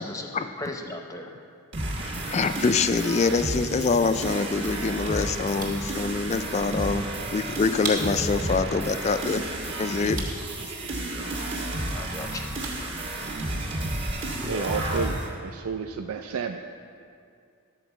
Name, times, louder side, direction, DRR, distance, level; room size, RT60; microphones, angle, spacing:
voice 1, 0.0-1.4 11.4-11.6 11.9-12.5 13.3-13.5, left 2 dB, 15° left, 3 dB, 0.7 m, -37 dB
sound 1, 1.7-15.3, right 1 dB, 55° right, 1.5 m, -32 dB
voice 2, 2.0-7.0 7.3-10.2, left 4 dB, 30° left, 10 dB, 0.3 m, -25 dB
sound 2, 4.1-14.1, right 2 dB, 35° right, 1.4 m, -42 dB
voice 3, 14.5-16.6, right 5 dB, 75° right, 6 dB, 0.4 m, -31 dB
12.0 x 4.6 x 6.9 m, 2.3 s
head